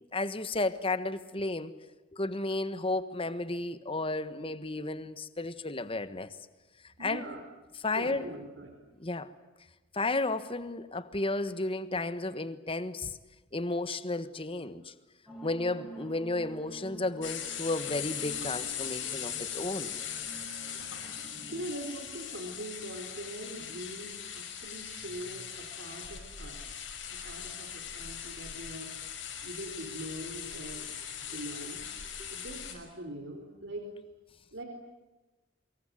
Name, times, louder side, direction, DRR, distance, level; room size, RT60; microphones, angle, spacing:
voice 1, 0.1-1.7 2.1-6.3 7.0-7.2 7.8-8.3 9.0-9.3 9.9-13.1 13.5-14.9 15.4-19.9, left 2 dB, 30° left, 13 dB, 1.4 m, -33 dB
voice 2, 7.0-7.4 7.9-8.7 21.5-28.9 29.4-30.9 31.2-31.8 32.3-33.9 34.5-34.7, right 1 dB, 70° right, 3 dB, 4.2 m, -42 dB
sound 1, 15.3-21.6, right 2 dB, ahead, 7.8 m, -49 dB
sound 2, 17.2-32.7, left 8 dB, 75° left, 5.8 m, -40 dB
25.0 x 22.5 x 9.5 m, 1.1 s
head